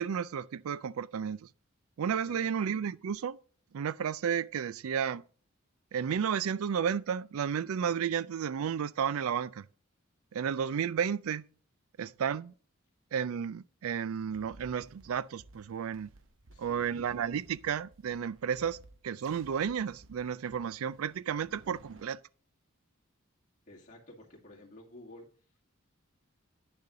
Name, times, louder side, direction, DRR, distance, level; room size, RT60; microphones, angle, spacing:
voice 1, 0.0-1.5 2.0-3.4 3.7-5.2 5.9-9.6 10.3-11.5 12.0-12.5 13.1-16.1 16.6-18.8 19.0-22.2, right 7 dB, 85° right, 0.4 m, -32 dB
sound 1, 14.2-22.0, right 2 dB, 65° right, 0.9 m, -57 dB
voice 2, 16.5-17.0 23.7-25.3, left 1 dB, 35° left, 2.2 m, -52 dB
9.8 x 6.7 x 3.8 m
head